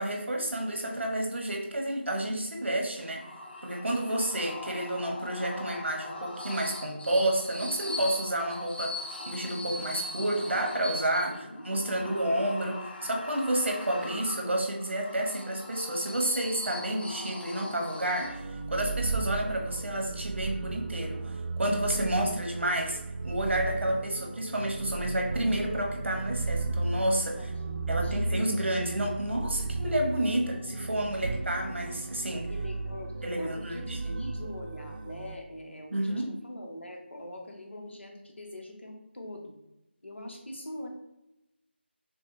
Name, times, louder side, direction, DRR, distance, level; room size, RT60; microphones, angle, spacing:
voice 1, 0.0-3.3 3.6-23.0 23.2-27.5 27.9-32.5 33.2-34.2 35.9-36.3, right 1 dB, 80° right, 1 dB, 1.2 m, -30 dB
sound 1, 3.0-18.7, left 1 dB, 60° left, 1.0 m, -41 dB
voice 2, 11.3-12.4 27.4-28.3 31.2-31.4 32.5-39.5 40.0-40.9, left 1 dB, 85° left, 2 dB, 1.2 m, -43 dB
sound 2, 18.2-35.4, right 3 dB, 50° right, 0.4 m, -35 dB
6.3 x 2.3 x 3.1 m, 0.92 s
figure-of-eight pair, 160°, 6 cm